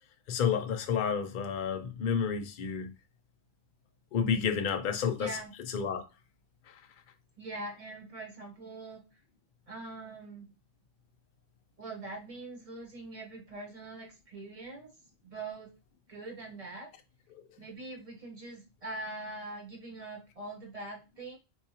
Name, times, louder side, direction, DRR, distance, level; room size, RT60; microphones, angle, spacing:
voice 1, 0.3-2.9 4.1-5.3 5.7-6.0 17.4-17.5, left 7 dB, 55° left, 0.6 m, -30 dB
voice 2, 5.2-5.5 7.4-9.0 9.7-10.5 11.8-14.9 15.2-15.7 16.1-16.9 17.6-21.4, right 2 dB, 30° right, 1.0 m, -43 dB
4.3 x 2.4 x 2.8 m
omnidirectional pair, 1.3 m